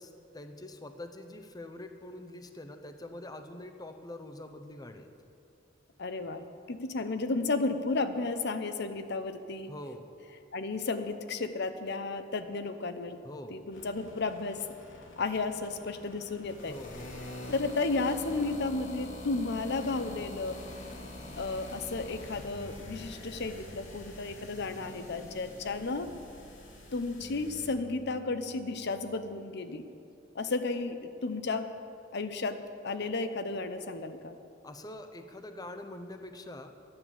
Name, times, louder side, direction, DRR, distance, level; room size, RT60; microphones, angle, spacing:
voice 1, 0.0-5.1 9.7-10.0 13.2-13.6 16.6-17.2 34.6-36.8, left 1 dB, 20° left, 6 dB, 0.8 m, -44 dB
voice 2, 6.0-9.7 10.5-13.2 13.5-14.6 15.2-16.8 17.5-20.6 21.4-26.1 26.9-29.8 30.3-31.7 32.1-32.6 32.8-34.3, left 3 dB, 60° left, 9 dB, 0.8 m, -33 dB
sound 1, 13.7-27.7, left 1 dB, 90° left, 2.6 m, -46 dB
sound 2, 18.2-29.4, equal, 20° right, 1.3 m, -53 dB
11.5 x 9.7 x 7.3 m, 2.6 s
head